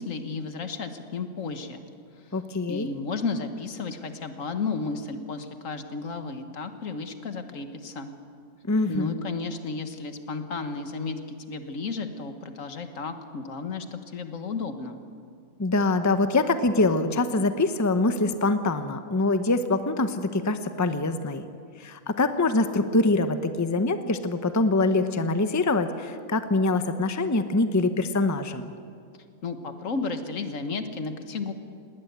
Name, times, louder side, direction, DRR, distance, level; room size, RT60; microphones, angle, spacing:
voice 1, 0.0-1.8 2.7-8.1 8.9-15.0 29.4-31.5, left 4 dB, 70° left, 8 dB, 1.7 m, -33 dB
voice 2, 2.3-2.9 8.7-9.2 15.6-21.4 21.8-28.7, left 2 dB, 15° left, 9 dB, 0.7 m, -24 dB
20.0 x 18.0 x 8.2 m, 2.3 s
omnidirectional pair, 1.4 m